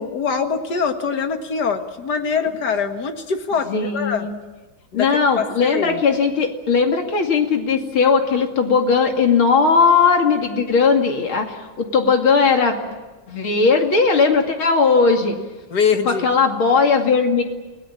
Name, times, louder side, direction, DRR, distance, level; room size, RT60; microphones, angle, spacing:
voice 1, 0.0-4.3 4.9-5.1 5.4-6.0 15.7-16.3, left 6 dB, 55° left, 6 dB, 2.3 m, -23 dB
voice 2, 3.7-4.3 4.9-12.8 13.3-15.4 16.0-17.4, left 5 dB, 80° left, 3 dB, 3.3 m, -18 dB
29.0 x 19.0 x 8.8 m, 1.2 s
omnidirectional pair, 2.3 m